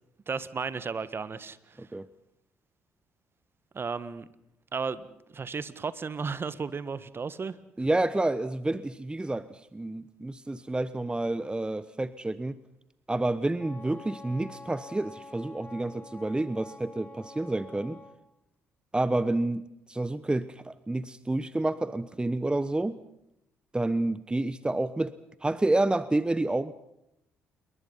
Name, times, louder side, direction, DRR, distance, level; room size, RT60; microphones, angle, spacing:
voice 1, 0.3-1.8 3.7-4.3 4.7-5.1 5.3-7.9, right 5 dB, 40° right, 16 dB, 1.6 m, -34 dB
voice 2, 7.8-12.5 13.1-18.0 18.9-19.6 19.9-23.0 23.7-25.1 25.4-26.7, right 2 dB, 15° right, 16 dB, 1.1 m, -29 dB
Wind instrument woodwind instrument, 13.6-18.2, left 2 dB, 25° left, 3.3 m, -47 dB
28.5 x 22.5 x 5.6 m, 0.81 s
hypercardioid pair, 50°, 6 cm